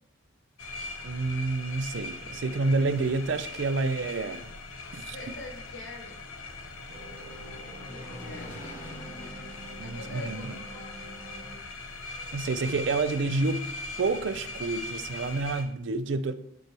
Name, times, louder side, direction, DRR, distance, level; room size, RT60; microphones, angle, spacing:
sound 1, 0.6-15.6, left 3 dB, 85° left, 0.9 m, -40 dB
voice 1, 1.0-4.5 4.9-5.3 9.8-10.5 12.3-13.7 14.0-16.3, right 3 dB, 60° right, 0.4 m, -29 dB
sound 2, 2.4-3.4 6.9-11.6, right 2 dB, 30° right, 0.9 m, -48 dB
Engine, 4.1-12.7, left 1 dB, 40° left, 0.9 m, -49 dB
voice 2, 5.1-6.4 7.9-8.6 9.8-10.6, left 2 dB, 65° left, 1.4 m, -44 dB
9.3 x 4.6 x 3.0 m
head